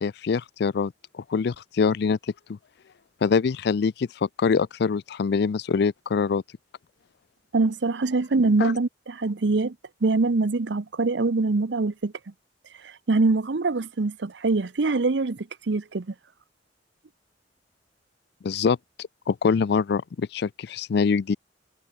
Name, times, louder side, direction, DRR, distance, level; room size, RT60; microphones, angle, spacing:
voice 1, 0.0-2.2 3.2-6.4 8.6-8.7 18.4-21.4, left 5 dB, 65° left, 0.4 m, -24 dB
voice 2, 7.5-9.7 10.0-12.1 12.8-16.1, right 3 dB, 70° right, 0.7 m, -24 dB
head